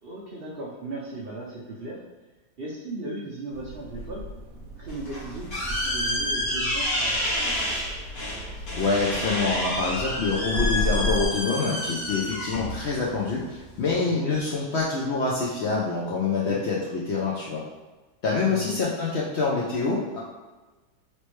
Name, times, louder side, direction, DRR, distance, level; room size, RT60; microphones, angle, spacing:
voice 1, 0.0-2.0 2.6-4.2 4.8-7.8 14.1-14.4 16.4-16.7 18.5-18.8, right 2 dB, 80° right, -5 dB, 0.5 m, -37 dB
sound 1, 3.5-11.3, left 1 dB, 65° right, 1.1 m, -34 dB
sound 2, 4.9-14.0, left 1 dB, 40° left, 1.3 m, -29 dB
voice 2, 8.7-17.6 18.2-20.2, left 4 dB, 75° left, -5 dB, 0.6 m, -26 dB
3.2 x 3.0 x 3.1 m, 1.2 s
omnidirectional pair, 1.8 m